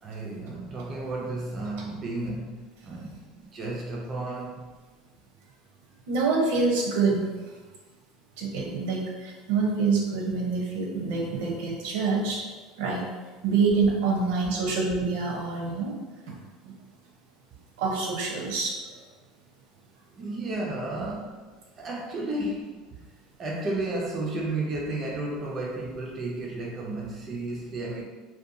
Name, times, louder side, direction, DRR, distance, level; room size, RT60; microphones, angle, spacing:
voice 1, 0.0-2.6 2.8-4.7 20.2-21.4 21.8-22.8 23.4-28.0, right 2 dB, 25° right, -3 dB, 0.3 m, -32 dB
voice 2, 6.1-7.3 8.4-12.4 12.8-13.0 13.4-15.9 16.3-16.4 16.6-16.7 17.8-18.7, right 4 dB, 80° right, -1 dB, 0.6 m, -26 dB
2.6 x 2.2 x 2.5 m, 1.3 s
cardioid pair, 170°, 0 cm